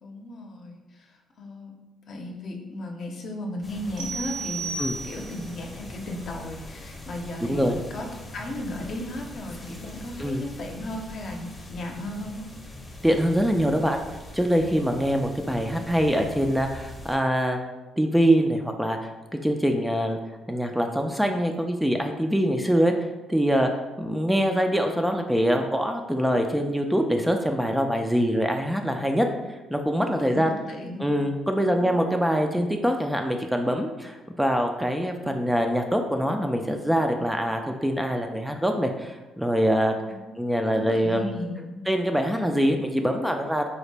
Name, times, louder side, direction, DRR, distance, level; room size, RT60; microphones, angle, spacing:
voice 1, 0.0-1.1 1.4-1.7 2.1-8.1 8.3-12.5 30.2-31.1 31.6-31.9 40.1-40.3 40.7-41.8, left 1 dB, 55° left, 2 dB, 0.6 m, -35 dB
sound 1, 3.6-17.2, left 1 dB, 20° left, 0.7 m, -42 dB
sound 2, 4.0-5.5, right 4 dB, 75° right, 0.6 m, -33 dB
voice 2, 7.4-7.8 10.2-10.4 13.0-14.0 14.3-17.7 18.0-19.1 19.4-20.2 20.5-22.9 23.3-23.7 24.0-30.5 31.0-41.3 41.9-43.7, equal, 5° right, 4 dB, 0.3 m, -24 dB
3.9 x 2.1 x 3.2 m, 1.1 s
cardioid pair, 85°, 0 cm